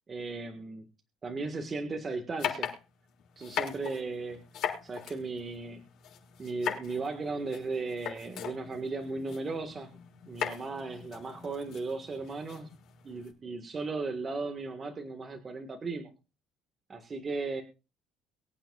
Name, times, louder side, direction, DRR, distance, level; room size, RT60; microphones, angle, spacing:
voice 1, 0.1-0.9 1.2-2.7 3.4-4.4 4.8-5.8 6.4-10.0 10.3-12.7 13.0-16.1 16.9-17.6, right 3 dB, 30° right, 5 dB, 1.6 m, -36 dB
sound 1, 2.4-13.3, left 9 dB, 60° left, 6.0 m, -40 dB
24.0 x 9.0 x 2.4 m, 0.31 s
cardioid pair, 125°, 0 cm